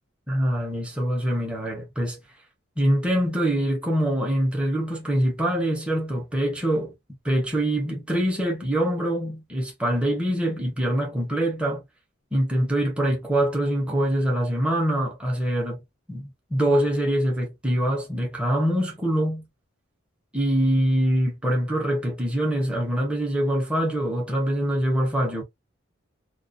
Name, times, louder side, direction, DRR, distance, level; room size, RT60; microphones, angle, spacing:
voice 1, 0.3-2.2 2.8-6.9 7.2-11.8 12.3-15.8 16.1-19.4 20.3-25.4, right 1 dB, 5° right, 0.7 m, -24 dB
2.3 x 2.1 x 2.5 m
head